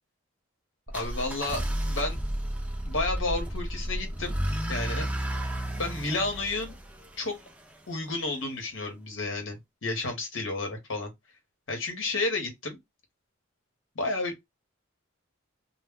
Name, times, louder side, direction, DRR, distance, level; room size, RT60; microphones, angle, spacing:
voice 1, 0.9-2.2 2.8-4.3 4.7-5.0 5.8-6.7 7.2-7.3 7.9-11.1 11.7-12.8 14.0-14.5, left 2 dB, 60° left, 0.9 m, -31 dB
sound 1, 0.9-7.8, right 1 dB, 5° right, 0.3 m, -32 dB
2.1 x 2.0 x 3.5 m
head